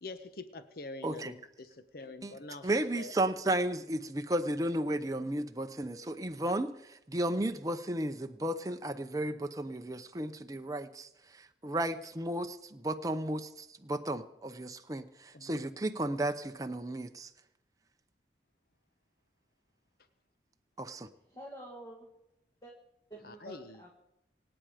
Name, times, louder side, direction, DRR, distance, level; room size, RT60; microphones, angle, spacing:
voice 1, 0.0-3.1 15.3-15.5 23.2-23.8, left 3 dB, 55° left, 10 dB, 1.0 m, -45 dB
voice 2, 2.6-11.1 11.3-17.3 20.8-21.1, right 1 dB, 20° right, 7 dB, 0.7 m, -34 dB
voice 3, 21.2-22.1 22.6-22.7 23.1-23.9, right 1 dB, 20° left, 0 dB, 1.9 m, -48 dB
25.5 x 8.9 x 5.1 m, 0.85 s
head